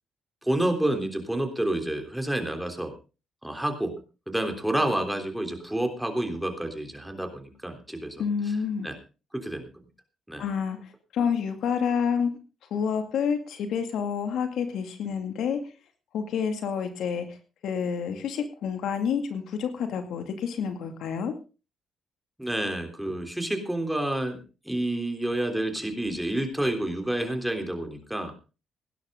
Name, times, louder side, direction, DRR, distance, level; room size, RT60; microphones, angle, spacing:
voice 1, 0.4-2.9 3.4-3.9 4.3-8.6 8.8-9.0 9.3-9.7 10.3-10.5 22.4-24.4 24.6-28.4, right 1 dB, 5° right, 5 dB, 3.4 m, -29 dB
voice 2, 8.2-8.9 10.4-10.8 11.1-12.3 12.7-15.6 16.1-17.3 17.6-21.3, left 7 dB, 75° left, 7 dB, 2.3 m, -28 dB
17.5 x 11.5 x 3.8 m, 0.33 s
cardioid pair, 90°, 0 cm